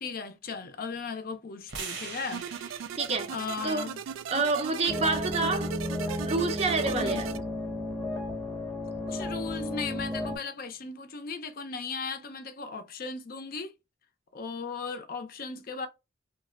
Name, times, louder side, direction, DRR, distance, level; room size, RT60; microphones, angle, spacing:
voice 1, 0.0-2.5 3.3-4.0 6.9-7.3 9.1-13.7 14.3-15.9, left 4 dB, 50° left, 0.5 m, -37 dB
sound 1, 1.7-5.9, right 5 dB, 70° right, 0.9 m, -44 dB
sound 2, 2.3-7.4, right 8 dB, 85° right, 0.3 m, -38 dB
voice 2, 3.0-3.3 3.6-3.9 4.3-5.7 6.2-7.3, right 3 dB, 30° right, 0.5 m, -28 dB
sound 3, 4.9-10.4, left 1 dB, 10° left, 0.8 m, -33 dB
2.9 x 2.1 x 3.6 m
head